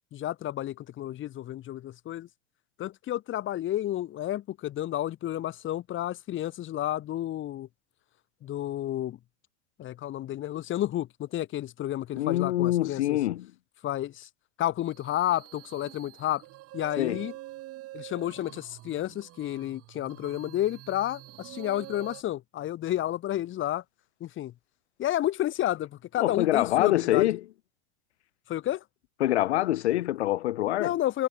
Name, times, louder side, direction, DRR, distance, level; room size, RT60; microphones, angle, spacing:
voice 1, 0.1-2.3 2.8-7.7 8.4-9.2 9.8-13.2 13.8-14.3 14.6-16.4 16.7-17.3 17.9-23.8 24.2-24.5 25.0-27.3 28.5-28.8 30.8-31.3, left 13 dB, 35° left, 5.2 m, -31 dB
voice 2, 12.1-13.5 17.0-17.2 26.2-27.4 29.2-30.9, left 14 dB, 85° left, 1.1 m, -25 dB
sound 1, 14.9-22.2, right 17 dB, 45° right, 7.8 m, -46 dB
supercardioid pair, 120°, 33 cm